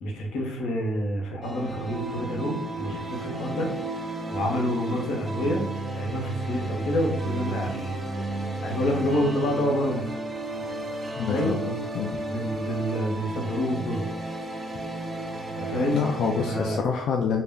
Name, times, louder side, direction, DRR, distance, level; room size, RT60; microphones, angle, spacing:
voice 1, 0.0-5.7 6.0-8.3 8.6-10.0 11.3-11.6 12.3-14.1 15.5-16.0 16.5-16.8, equal, 85° left, 1 dB, 0.7 m, -28 dB
sound 1, 1.4-16.8, right 2 dB, 30° right, 0.6 m, -33 dB
voice 2, 11.2-12.2 15.9-17.4, left 6 dB, 70° left, 1 dB, 0.3 m, -27 dB
2.2 x 2.0 x 3.4 m, 0.73 s
cardioid pair, 90°, 0 cm